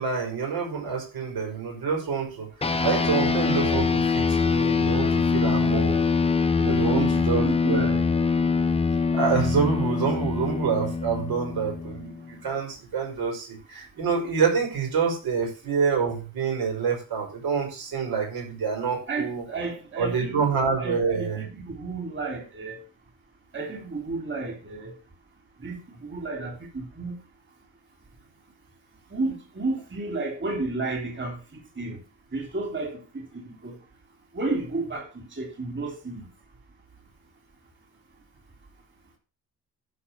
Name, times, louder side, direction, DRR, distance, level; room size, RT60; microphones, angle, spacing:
voice 1, 0.0-6.0 6.6-8.0 9.1-19.4 20.0-21.4, right 6 dB, 85° right, 1 dB, 5.2 m, -27 dB
sound 1, 2.6-12.3, left 5 dB, 15° left, 0.6 m, -24 dB
voice 2, 6.7-8.0 19.1-20.5 20.7-22.8 23.5-24.9 25.6-27.2 29.1-32.0 32.3-33.7 34.3-36.2, right 3 dB, 30° right, 1 dB, 3.1 m, -32 dB
11.5 x 5.2 x 7.2 m, 0.35 s
wide cardioid pair, 145°, 36 cm